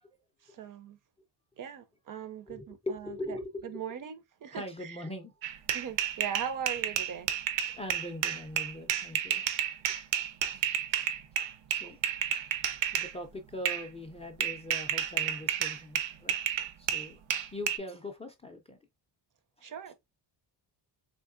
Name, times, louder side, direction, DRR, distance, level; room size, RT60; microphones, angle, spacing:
voice 1, 0.4-1.0 1.6-3.4 3.6-5.0 5.7-7.3 11.8-11.9 19.6-19.9, right 8 dB, 45° right, 0.5 m, -40 dB
voice 2, 2.5-3.8 4.5-5.3 7.7-9.4 10.6-10.7 11.7-12.0 12.9-16.4 16.8-17.2 17.5-18.8, left 1 dB, 15° left, 0.3 m, -41 dB
sound 1, 5.4-13.1 13.6-13.9 14.4-17.8, right 9 dB, 80° right, 0.7 m, -31 dB
3.7 x 2.9 x 2.4 m
cardioid pair, 125°, 45 cm